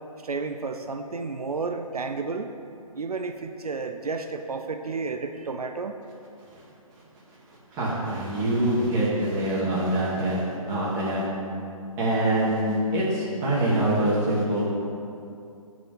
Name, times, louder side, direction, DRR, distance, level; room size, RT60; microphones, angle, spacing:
voice 1, 0.2-2.5 2.9-6.0, right 4 dB, 85° right, 6 dB, 0.6 m, -31 dB
voice 2, 7.7-11.3 12.0-14.7, right 1 dB, 20° right, -7 dB, 2.3 m, -24 dB
14.0 x 4.9 x 3.9 m, 2.5 s
figure-of-eight pair, 150°, 19 cm